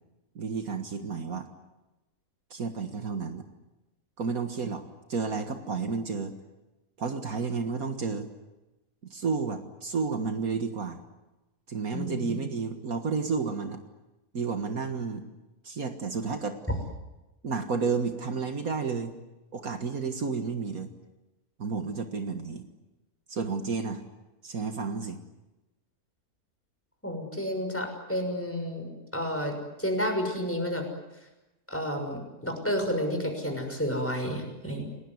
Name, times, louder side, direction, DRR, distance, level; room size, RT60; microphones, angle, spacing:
voice 1, 0.4-1.5 2.5-3.5 4.2-4.8 5.1-6.3 7.0-8.3 9.1-11.0 11.7-13.8 14.3-15.2 15.6-16.6 17.4-19.1 19.5-20.9 21.6-22.6 23.3-24.0 24.4-25.2, right 5 dB, 65° right, 6 dB, 2.1 m, -31 dB
voice 2, 11.9-12.3 27.0-30.8 31.7-34.8, equal, 10° left, 3 dB, 6.2 m, -31 dB
29.0 x 19.0 x 9.6 m, 1.0 s
omnidirectional pair, 1.6 m